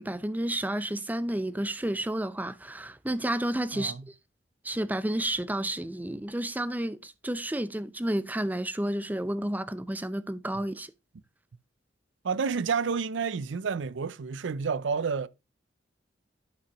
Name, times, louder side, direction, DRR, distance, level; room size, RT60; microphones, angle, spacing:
voice 1, 0.0-4.1 4.6-10.9, right 1 dB, 10° right, 0.5 m, -31 dB
voice 2, 3.7-4.0 12.2-15.3, right 5 dB, 75° right, 0.5 m, -30 dB
11.0 x 5.9 x 3.0 m
head